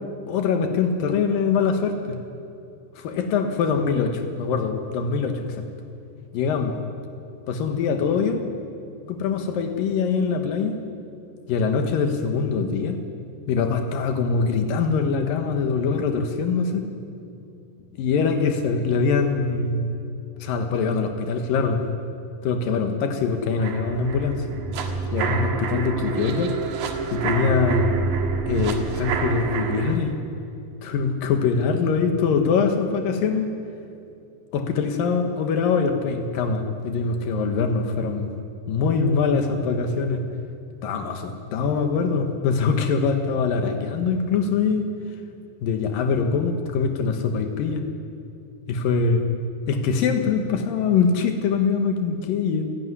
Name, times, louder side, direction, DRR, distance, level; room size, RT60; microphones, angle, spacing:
voice 1, 0.3-2.2 3.0-5.6 6.3-6.8 7.5-8.4 9.1-10.8 11.5-13.0 13.5-16.9 18.0-19.9 20.4-21.8 22.4-24.5 25.1-26.5 27.1-27.9 28.5-30.2 30.8-33.5 34.5-38.3 38.7-40.2 40.8-44.9 45.6-47.8 48.7-49.3 49.7-52.6, left 5 dB, 90° left, 5 dB, 3.1 m, -23 dB
sound 1, 23.6-29.9, right 5 dB, 85° right, 3.2 m, -27 dB
27.5 x 11.5 x 9.6 m, 2.6 s
omnidirectional pair, 3.9 m